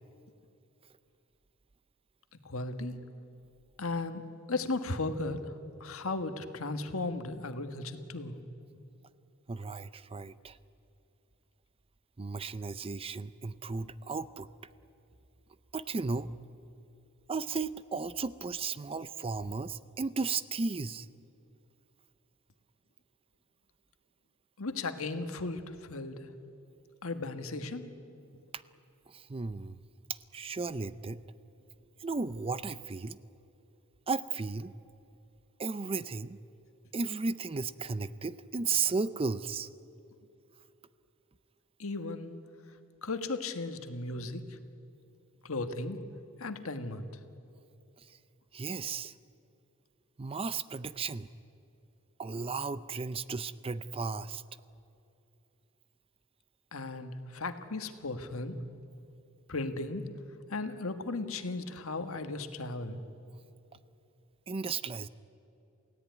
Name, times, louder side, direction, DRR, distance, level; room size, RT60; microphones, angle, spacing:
voice 1, 2.4-3.0 3.8-4.2 4.5-5.5 5.8-8.3 24.6-26.3 27.0-27.9 41.8-42.4 43.0-44.6 45.4-46.0 46.4-47.1 56.7-58.6 59.5-60.0 60.5-63.0, left 3 dB, 70° left, 8 dB, 1.6 m, -36 dB
voice 2, 9.5-10.6 12.2-14.5 15.7-16.3 17.3-21.1 28.5-28.6 29.1-29.8 30.1-31.2 32.0-33.2 34.1-34.7 35.6-36.4 36.9-39.7 48.0-48.2 48.5-49.1 50.2-51.3 52.2-54.4 64.5-65.1, right 4 dB, 25° right, 16 dB, 0.5 m, -35 dB
28.5 x 16.5 x 9.4 m, 2.8 s
head